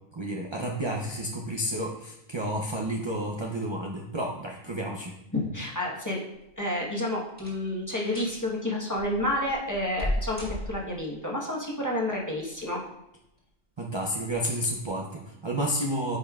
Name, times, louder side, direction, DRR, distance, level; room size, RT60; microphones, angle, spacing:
voice 1, 0.1-5.1 13.8-16.2, equal, 35° right, 0 dB, 0.4 m, -31 dB
voice 2, 5.3-6.3 6.6-12.8, left 1 dB, 15° left, -4 dB, 1.1 m, -30 dB
sound 1, 6.3-6.8 7.3-7.7 8.0-8.4 8.9-11.1 12.3-12.9 13.4-13.5 14.2-14.4 14.8-14.9, equal, 5° right, 1.9 m, -35 dB
9.4 x 5.3 x 2.4 m, 0.87 s
omnidirectional pair, 1.3 m